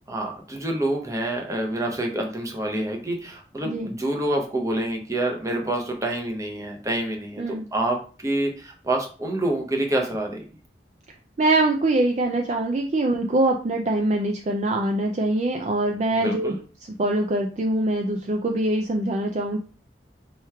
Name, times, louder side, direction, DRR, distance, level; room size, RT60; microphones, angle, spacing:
voice 1, 0.1-10.4 16.1-16.6, right 1 dB, 20° right, 1 dB, 0.8 m, -27 dB
voice 2, 11.4-16.5 17.0-19.6, right 2 dB, 40° right, 2 dB, 0.4 m, -23 dB
3.4 x 3.0 x 4.5 m, 0.38 s
head